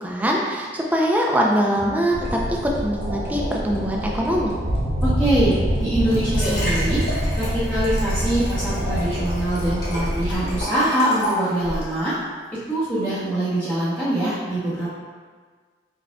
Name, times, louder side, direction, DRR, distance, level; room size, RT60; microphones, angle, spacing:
voice 1, 0.0-4.5, equal, 10° right, -2 dB, 0.5 m, -22 dB
sound 1, 1.5-8.8, equal, 30° left, 0.9 m, -38 dB
sound 2, 2.1-10.6, equal, 70° right, 0.8 m, -25 dB
voice 2, 5.0-7.0 7.4-12.1 12.7-14.9, right 1 dB, 5° left, -14 dB, 0.9 m, -23 dB
Liquid, 5.7-12.0 12.6-12.7, equal, 60° left, 1.3 m, -31 dB
4.7 x 4.7 x 2.3 m, 1.5 s
head